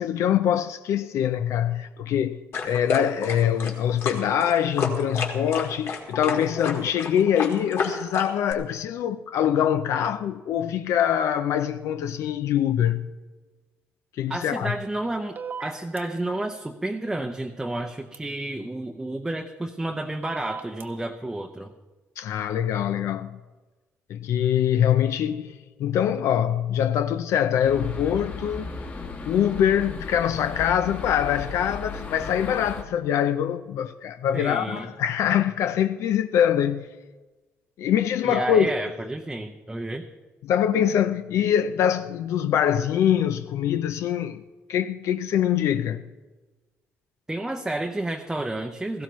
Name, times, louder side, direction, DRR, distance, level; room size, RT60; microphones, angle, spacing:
voice 1, 0.0-13.1 14.2-14.7 22.2-23.4 24.1-28.7 29.0-36.9 37.8-38.7 40.4-44.4 44.7-46.0, left 9 dB, 75° left, 0.5 m, -24 dB
sound 1, 2.5-8.5, left 4 dB, 60° left, 1.9 m, -30 dB
voice 2, 14.3-21.7 34.3-34.9 38.2-40.1 47.3-49.0, right 1 dB, 10° right, 0.6 m, -31 dB
sound 2, 15.3-16.0 18.1-18.2 20.2-20.8, right 6 dB, 45° right, 1.0 m, -36 dB
sound 3, 27.6-32.8, left 3 dB, 35° left, 1.5 m, -36 dB
17.0 x 15.5 x 3.1 m
cardioid pair, 135°, 5 cm